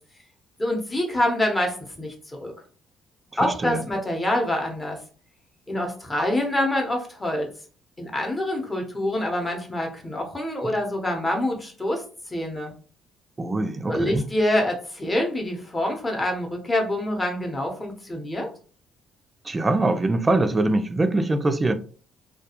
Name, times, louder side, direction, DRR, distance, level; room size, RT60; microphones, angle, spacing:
voice 1, 0.6-2.5 3.4-5.0 5.7-7.5 8.0-12.7 13.9-18.5, left 1 dB, 20° left, 0.8 m, -26 dB
voice 2, 3.4-3.8 10.6-10.7 13.4-14.3 19.5-21.7, right 2 dB, 20° right, 0.3 m, -23 dB
2.3 x 2.2 x 2.8 m
cardioid pair, 95°, 0 cm